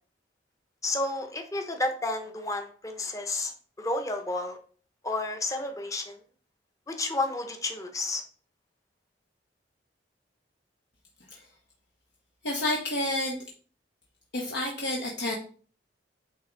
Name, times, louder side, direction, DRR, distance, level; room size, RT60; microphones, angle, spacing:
voice 1, 0.8-3.5 3.8-4.6 5.0-6.2 6.9-8.2, left 2 dB, 20° left, 5 dB, 0.9 m, -31 dB
voice 2, 12.4-13.4 14.3-15.3, left 1 dB, 65° left, -1 dB, 1.1 m, -29 dB
9.3 x 3.5 x 3.9 m, 0.43 s
head